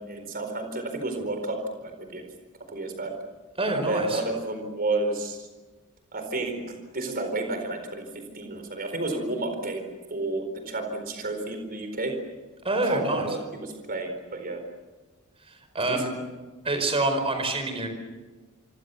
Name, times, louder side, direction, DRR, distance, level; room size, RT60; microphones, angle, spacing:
voice 1, 0.0-2.2 2.7-3.1 3.7-5.4 6.1-8.0 8.3-12.1 12.8-14.6 15.9-16.0, right 2 dB, 40° right, 6 dB, 4.4 m, -31 dB
voice 2, 3.6-4.2 12.6-13.4 15.5-16.2 16.6-17.9, right 2 dB, 25° right, 6 dB, 4.8 m, -26 dB
27.5 x 25.0 x 7.1 m, 1.3 s
head